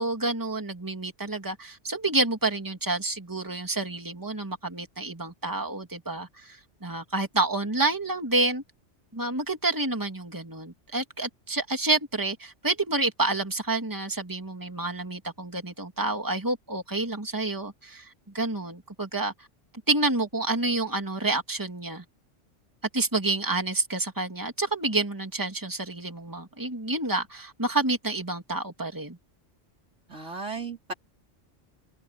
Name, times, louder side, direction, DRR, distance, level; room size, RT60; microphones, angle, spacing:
voice 1, 0.0-8.6 9.1-19.3 19.9-22.0 22.9-29.2, right 2 dB, 15° right, 2.8 m, -29 dB
voice 2, 30.1-30.9, right 4 dB, 70° right, 4.0 m, -35 dB
open air
omnidirectional pair, 1.3 m